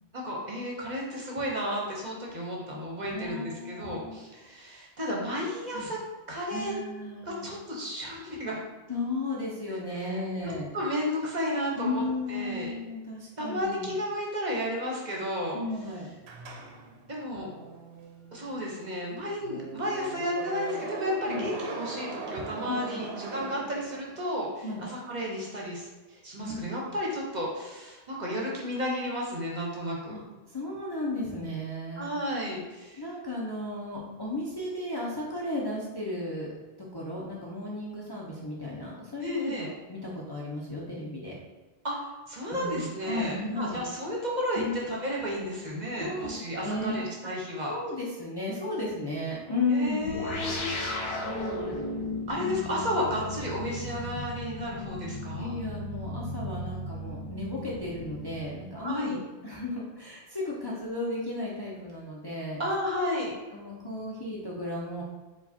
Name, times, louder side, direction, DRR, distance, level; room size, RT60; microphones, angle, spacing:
voice 1, 0.1-6.0 6.3-6.7 7.2-8.6 9.9-10.1 10.4-12.7 13.4-15.6 17.1-17.5 18.3-30.1 32.0-33.0 39.2-39.7 41.8-47.7 49.7-51.0 52.3-55.5 58.8-59.2 62.6-63.3, equal, 45° right, -3 dB, 0.9 m, -33 dB
voice 2, 3.0-4.2 5.7-5.9 6.5-7.5 8.9-10.7 11.8-13.9 15.5-16.1 21.3-21.5 22.7-23.0 24.6-24.8 26.4-26.6 30.1-30.2 30.5-32.1 33.0-36.6 36.9-41.3 42.5-43.8 44.6-44.8 46.0-46.3 46.6-47.0 47.3-50.1 51.2-51.8 55.4-62.6 63.5-65.0, left 2 dB, 25° left, -5 dB, 0.6 m, -34 dB
sound 1, 16.2-24.3, right 4 dB, 75° right, 0.8 m, -40 dB
sound 2, 50.1-58.9, left 1 dB, 70° left, 1.0 m, -36 dB
4.7 x 2.3 x 4.2 m, 1.2 s
omnidirectional pair, 1.1 m